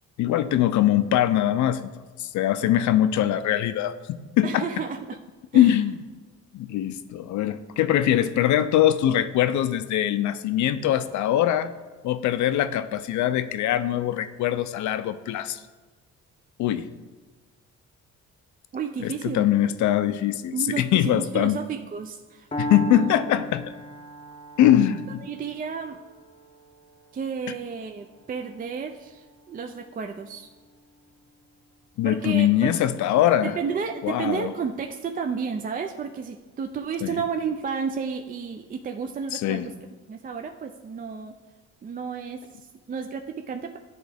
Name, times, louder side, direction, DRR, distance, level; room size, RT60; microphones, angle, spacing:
voice 1, 0.2-1.9 2.2-3.9 4.4-4.6 5.5-5.9 6.5-11.7 12.0-15.6 16.6-16.9 19.0-21.6 22.6-23.6 24.6-25.2 32.0-33.6 34.0-34.5 37.0-37.1 39.3-39.7, left 11 dB, 70° left, 12 dB, 0.5 m, -22 dB
voice 2, 4.4-5.2 5.5-5.8 18.7-19.5 20.5-22.5 22.9-23.1 24.9-26.0 27.1-30.5 32.0-32.7 33.4-39.6 40.1-41.3 41.8-43.8, right 6 dB, 30° right, 4 dB, 0.4 m, -32 dB
Piano, 22.5-30.4, equal, 20° left, 0.6 m, -38 dB
10.0 x 3.6 x 3.4 m, 1.4 s
cardioid pair, 90°, 30 cm